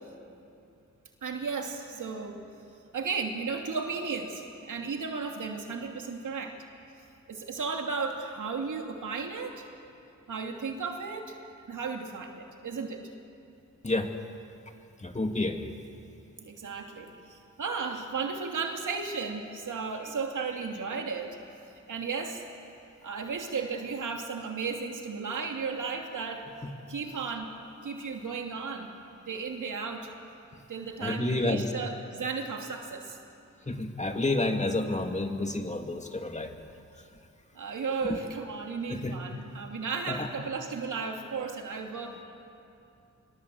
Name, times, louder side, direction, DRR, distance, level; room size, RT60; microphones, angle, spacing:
voice 1, 1.2-2.4 2.9-6.6 7.3-9.7 10.3-11.3 11.7-13.0 16.4-21.4 21.9-22.4 23.0-26.5 26.9-27.5 27.8-28.9 29.2-30.1 30.7-33.2 37.5-42.2, right 5 dB, 80° right, 2 dB, 2.8 m, -34 dB
voice 2, 15.0-15.8 26.6-26.7 30.5-30.6 31.0-31.7 33.7-36.5 37.0-37.1 38.9-39.1 40.1-40.3, left 2 dB, 25° left, 4 dB, 2.4 m, -30 dB
26.0 x 24.0 x 8.0 m, 2.6 s
cardioid pair, 70°, 30 cm